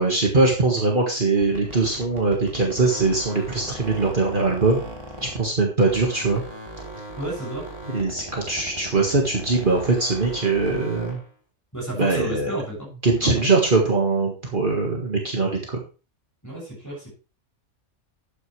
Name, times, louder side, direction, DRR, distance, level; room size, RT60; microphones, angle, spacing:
voice 1, 0.0-4.8 5.2-6.4 7.9-11.2 12.0-12.5 13.0-15.8, right 3 dB, 45° right, 0 dB, 1.8 m, -21 dB
sound 1, 1.4-5.6 5.9-11.3, right 1 dB, 20° right, 3.2 m, -38 dB
voice 2, 7.2-7.7 11.7-12.9 13.2-13.4 16.4-17.1, right 1 dB, 15° left, -3 dB, 6.8 m, -32 dB
11.5 x 9.3 x 3.3 m, 0.34 s
omnidirectional pair, 1.3 m